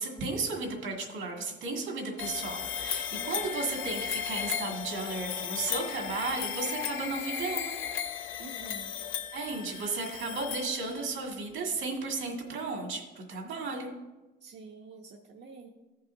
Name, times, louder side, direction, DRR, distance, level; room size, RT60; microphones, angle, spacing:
voice 1, 0.0-7.8 9.3-13.9, right 3 dB, 80° right, 1 dB, 2.0 m, -34 dB
sound 1, 2.2-11.2, left 8 dB, 80° left, 0.6 m, -35 dB
voice 2, 3.1-3.5 8.4-9.0 14.4-15.7, right 4 dB, 60° right, 0 dB, 0.8 m, -48 dB
15.5 x 5.5 x 2.7 m, 1.1 s
cardioid pair, 90°, 20 cm